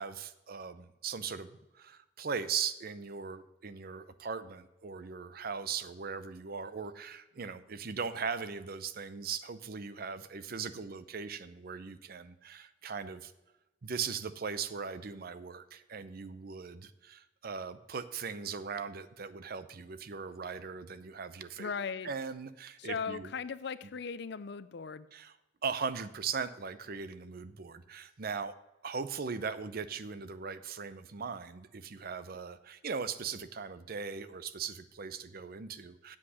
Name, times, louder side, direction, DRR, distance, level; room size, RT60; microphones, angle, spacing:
voice 1, 0.0-13.3 13.8-21.7 22.0-23.3 25.1-25.4 25.6-28.5 28.8-36.2, right 5 dB, 55° right, 13 dB, 0.6 m, -39 dB
voice 2, 21.6-22.1 22.8-25.1, left 5 dB, 65° left, 15 dB, 0.5 m, -38 dB
8.5 x 7.6 x 6.2 m, 1.0 s
head